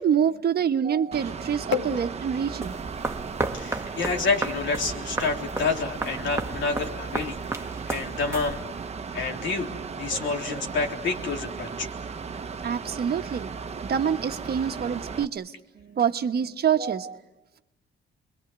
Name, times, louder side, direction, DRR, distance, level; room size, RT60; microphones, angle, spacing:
voice 1, 0.0-2.7 12.6-13.5 13.8-17.2, right 8 dB, 50° right, 7 dB, 1.3 m, -26 dB
Mechanical fan, 1.1-15.2, right 5 dB, 35° right, 1.2 m, -36 dB
sound 1, 2.6-8.9, right 2 dB, 15° right, 1.5 m, -34 dB
voice 2, 3.5-8.6 9.1-11.9, left 4 dB, 70° left, 2 dB, 3.6 m, -28 dB
28.5 x 22.5 x 8.1 m, 0.98 s
cardioid pair, 90°, 20 cm